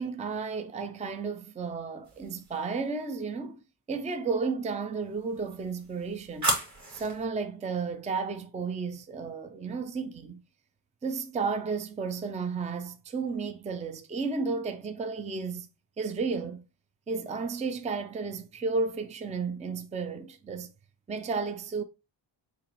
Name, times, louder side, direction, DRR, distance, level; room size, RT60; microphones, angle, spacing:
voice 1, 0.0-3.6 3.9-6.6 6.9-10.4 11.0-15.7 16.0-16.6 17.1-20.7 21.1-21.8, right 4 dB, 15° right, 0.4 m, -33 dB
sound 1, 2.0-2.8 5.2-7.2, right 1 dB, 40° right, 2.3 m, -34 dB
6.7 x 2.6 x 2.9 m
cardioid pair, 105°, 45 cm